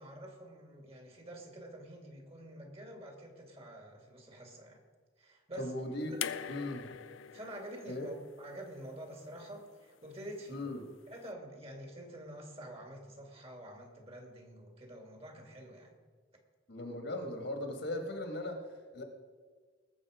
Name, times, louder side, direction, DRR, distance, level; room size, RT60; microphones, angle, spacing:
voice 1, 0.0-4.8 5.2-5.7 6.1-6.2 7.3-10.7 11.1-16.0, right 1 dB, 30° right, 3 dB, 2.2 m, -48 dB
voice 2, 5.6-6.2 6.5-6.9 7.9-8.1 10.5-10.8 16.7-19.0, left 1 dB, 60° left, 5 dB, 1.9 m, -38 dB
sound 1, 6.2-9.4 10.6-10.7, left 9 dB, 85° left, 0.6 m, -43 dB
20.0 x 7.0 x 5.0 m, 1.5 s
head